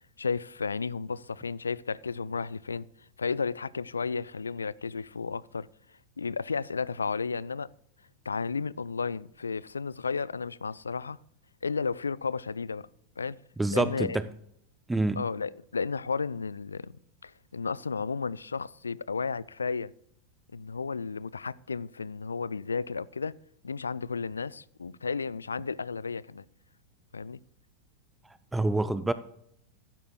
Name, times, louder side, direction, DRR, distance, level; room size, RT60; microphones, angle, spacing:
voice 1, 0.2-2.9 3.2-5.7 6.2-7.7 8.3-11.2 11.6-12.9 13.2-13.4 13.7-14.2 15.2-17.0 17.2-19.9 20.5-23.3 23.6-26.4 27.1-27.4, left 5 dB, 75° left, 0.3 m, -33 dB
voice 2, 13.6-14.3 14.9-15.3 28.5-29.1, right 2 dB, 5° right, 0.5 m, -27 dB
15.0 x 12.5 x 2.3 m
figure-of-eight pair, 90°, 0 cm